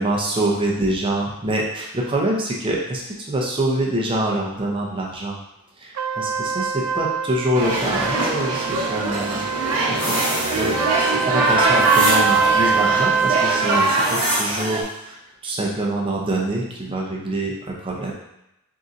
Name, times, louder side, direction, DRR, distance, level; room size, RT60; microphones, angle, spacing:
voice 1, 0.0-3.0 3.3-5.4 5.8-9.4 9.9-10.2 10.5-10.8 11.1-15.2 15.4-18.1, right 1 dB, 25° right, -2 dB, 0.6 m, -25 dB
Trumpet, 6.0-13.8, right 6 dB, 85° right, 0.4 m, -24 dB
sound 1, 7.5-14.8, right 2 dB, 70° right, 1.0 m, -22 dB
sound 2, 9.9-11.1 11.8-12.7 13.6-14.9, left 1 dB, 25° left, 1.2 m, -28 dB
3.9 x 3.7 x 2.6 m, 0.86 s
head